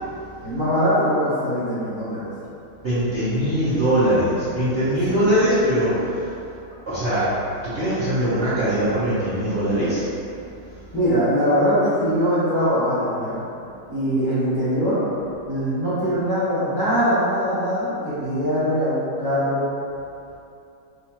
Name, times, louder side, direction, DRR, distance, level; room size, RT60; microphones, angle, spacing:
voice 1, 0.4-2.3 10.9-13.4 13.9-15.0 15.4-19.7, equal, 30° left, -14 dB, 1.1 m, -22 dB
voice 2, 2.8-6.5 6.9-7.3 7.6-10.1 10.8-10.9 13.8-13.9, right 1 dB, 40° right, -14 dB, 1.1 m, -21 dB
4.8 x 3.4 x 2.9 m, 2.6 s
omnidirectional pair, 2.3 m